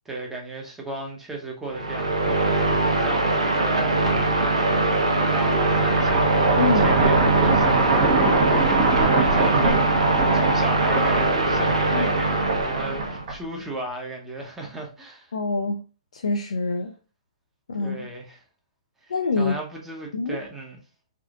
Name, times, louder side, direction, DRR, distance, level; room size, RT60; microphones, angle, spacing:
voice 1, 0.0-9.8 10.2-15.3 17.8-18.4 19.4-20.8, right 2 dB, 10° right, 0.8 m, -35 dB
sound 1, 1.7-13.2, right 2 dB, 90° right, 0.9 m, -22 dB
sound 2, 5.5-13.7, right 3 dB, 40° right, 1.1 m, -24 dB
voice 2, 6.6-7.0 11.9-12.1 15.3-15.8 16.1-16.9 17.7-18.1 19.1-19.5 20.1-20.4, left 3 dB, 80° left, 0.5 m, -25 dB
3.5 x 2.6 x 2.4 m
hypercardioid pair, 140°, 3 cm